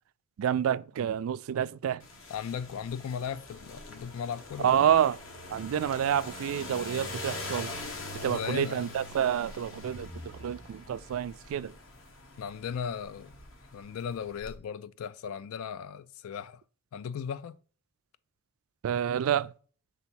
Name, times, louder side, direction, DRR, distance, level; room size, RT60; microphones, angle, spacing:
voice 1, 0.4-2.0 4.6-5.2 5.5-7.7 8.2-10.1 10.4-11.7 18.8-19.5, right 9 dB, 80° right, 0.3 m, -28 dB
sound 1, 2.0-14.5, left 2 dB, 65° left, 1.3 m, -43 dB
voice 2, 2.3-4.9 8.3-8.9 12.4-13.3 13.7-16.6 16.9-17.6, left 7 dB, 90° left, 0.3 m, -37 dB
6.9 x 3.5 x 4.5 m
head